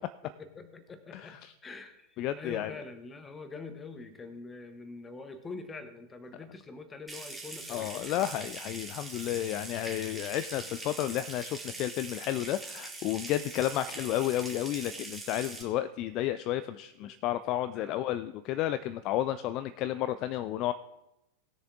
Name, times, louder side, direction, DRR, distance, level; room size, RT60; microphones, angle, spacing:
voice 1, 0.2-8.3 17.0-18.1, left 3 dB, 15° left, 10 dB, 1.2 m, -45 dB
voice 2, 1.1-1.5 2.2-2.7 7.7-20.7, left 13 dB, 40° left, 13 dB, 0.4 m, -32 dB
Water tap faucet / Sink (filling or washing) / Trickle dribble, 7.1-15.6, right 2 dB, 5° right, 2.1 m, -42 dB
18.5 x 6.9 x 3.6 m, 0.90 s
figure-of-eight pair, 90°, 0 cm